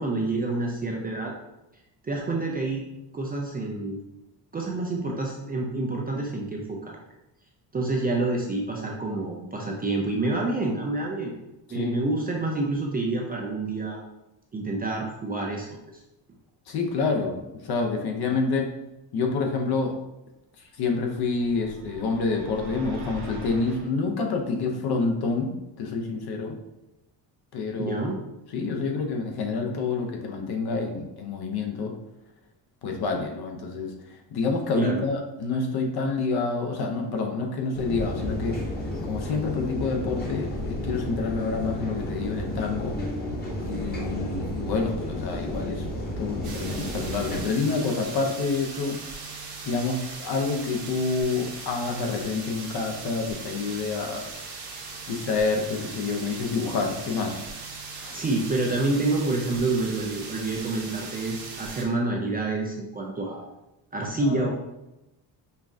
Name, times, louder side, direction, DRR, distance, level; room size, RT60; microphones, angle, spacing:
voice 1, 0.0-1.3 2.0-2.9 3.1-4.0 4.5-7.0 7.7-11.3 11.7-14.0 14.5-15.7 27.8-28.2 34.8-35.0 58.1-63.5 63.9-64.5, right 2 dB, 20° right, -1 dB, 0.3 m, -28 dB
voice 2, 16.7-17.4 17.6-18.7 19.1-20.0 20.8-26.6 27.5-28.1 28.5-31.9 32.8-33.9 34.3-38.6 39.0-43.0 43.6-45.8 46.2-49.0 49.6-54.3 55.1-57.4 58.0-58.2 64.1-64.4, left 4 dB, 55° left, 3 dB, 0.7 m, -28 dB
sound 1, 21.0-23.9, right 2 dB, 90° right, 1.0 m, -41 dB
sound 2, 37.7-47.4, left 1 dB, 20° left, 0.9 m, -32 dB
sound 3, 46.4-61.8, right 4 dB, 60° right, 1.1 m, -39 dB
5.3 x 2.3 x 2.6 m, 0.95 s
cardioid pair, 135°, 44 cm